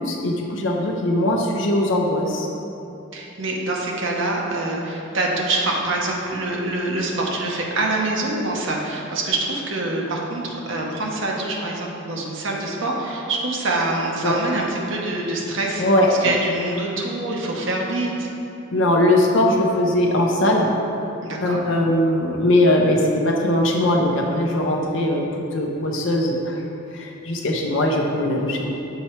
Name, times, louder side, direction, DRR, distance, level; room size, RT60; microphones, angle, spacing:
voice 1, 0.0-2.5 14.2-14.3 15.8-16.3 18.7-20.7 21.4-25.2 25.5-26.6 26.9-28.7, left 1 dB, 65° left, 0 dB, 0.7 m, -20 dB
voice 2, 3.1-18.3 21.2-21.6, right 2 dB, 70° right, -1 dB, 0.9 m, -25 dB
6.9 x 4.3 x 4.5 m, 2.8 s
head